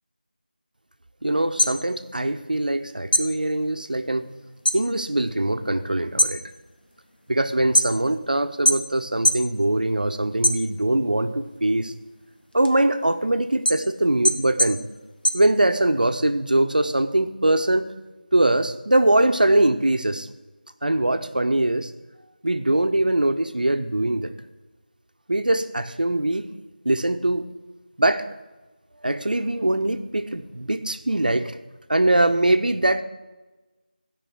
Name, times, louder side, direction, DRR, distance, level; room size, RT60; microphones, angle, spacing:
voice 1, 1.2-4.3 4.7-6.4 7.3-11.9 12.5-14.8 15.3-17.9 18.3-20.3 20.8-21.9 22.4-24.3 25.3-26.5 26.8-27.5 28.0-28.3 29.0-31.6 31.9-33.0, right 1 dB, 60° right, 9 dB, 0.8 m, -22 dB
sound 1, 1.4-2.8 3.1-4.9 5.2-5.7 6.0-8.2 8.6-9.5 9.9-11.1 11.5-16.1, left 1 dB, 75° left, 1.4 m, -24 dB
16.0 x 5.4 x 6.2 m, 1.2 s
figure-of-eight pair, 170°, 5 cm